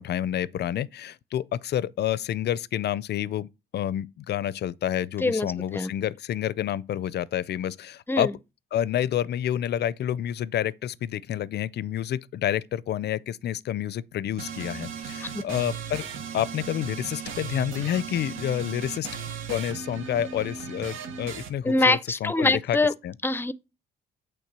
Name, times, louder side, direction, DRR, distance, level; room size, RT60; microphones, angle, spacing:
voice 1, 0.0-3.5 3.7-8.3 8.7-16.1 16.3-19.1 19.5-22.8 23.0-23.1, left 11 dB, 55° left, 0.5 m, -29 dB
voice 2, 5.2-5.9 8.1-8.3 15.3-15.4 21.6-22.9 23.2-23.5, left 2 dB, 10° left, 0.5 m, -24 dB
sound 1, 14.4-21.5, right 7 dB, 80° right, 1.3 m, -37 dB
8.5 x 3.5 x 6.0 m
cardioid pair, 90°, 20 cm